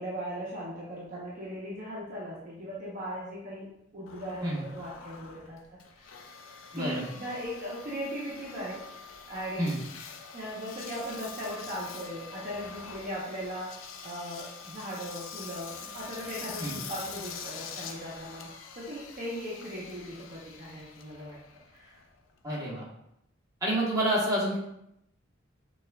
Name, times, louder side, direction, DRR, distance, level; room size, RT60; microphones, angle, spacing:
voice 1, 0.0-3.7 3.9-5.6 6.7-8.8 9.3-9.8 10.3-13.7 14.0-18.5 18.8-21.4 21.7-22.0, equal, 45° right, -6 dB, 0.8 m, -38 dB
Engine, 4.1-22.5, left 6 dB, 85° left, 0.4 m, -45 dB
voice 2, 6.7-7.1 9.6-9.8 16.6-16.8 22.4-22.9 23.6-24.6, right 1 dB, 20° right, -6 dB, 1.1 m, -28 dB
5.9 x 2.4 x 2.2 m, 0.80 s
head